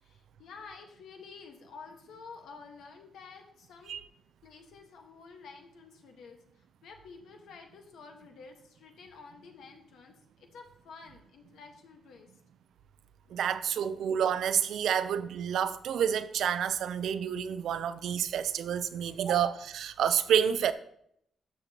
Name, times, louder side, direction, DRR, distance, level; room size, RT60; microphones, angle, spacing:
voice 1, 0.0-3.9 4.4-12.3 13.2-13.4, left 5 dB, 85° left, 1.4 m, -50 dB
voice 2, 13.3-20.7, right 8 dB, 75° right, 0.5 m, -29 dB
12.5 x 6.8 x 2.9 m
wide cardioid pair, 155°, 0 cm